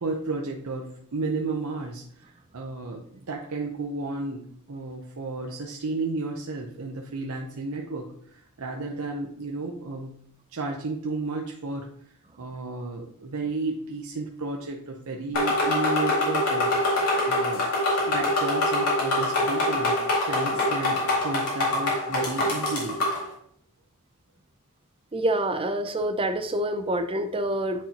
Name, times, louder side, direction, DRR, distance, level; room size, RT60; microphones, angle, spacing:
voice 1, 0.0-10.2 10.5-11.9 12.4-17.8 18.1-23.0, right 3 dB, 70° right, 0 dB, 0.7 m, -33 dB
sound 1, 15.3-23.2, left 1 dB, 85° left, 2.2 m, -24 dB
voice 2, 25.1-27.9, right 1 dB, 25° right, 8 dB, 0.6 m, -27 dB
9.3 x 4.4 x 2.9 m, 0.66 s
head